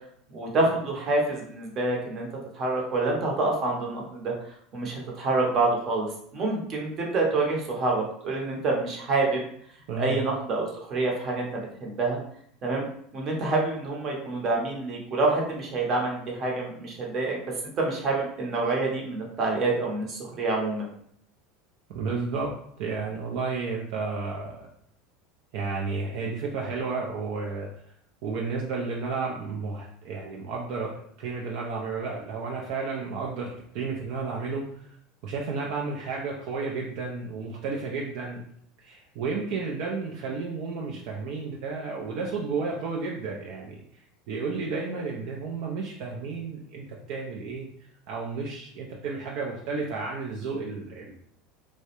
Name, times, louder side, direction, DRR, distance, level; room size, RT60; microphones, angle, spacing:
voice 1, 0.3-2.3 2.5-4.3 4.7-6.1 6.3-9.4 10.0-12.2 12.6-12.9 13.1-20.9, right 2 dB, 40° right, -1 dB, 0.7 m, -27 dB
voice 2, 9.9-10.2 21.9-22.5 22.8-24.7 25.5-27.7 28.2-35.0 35.2-38.4 38.8-43.8 44.3-47.7 48.1-51.1, right 4 dB, 65° right, -2 dB, 0.4 m, -32 dB
2.3 x 2.0 x 2.9 m, 0.67 s
supercardioid pair, 115°, 0 cm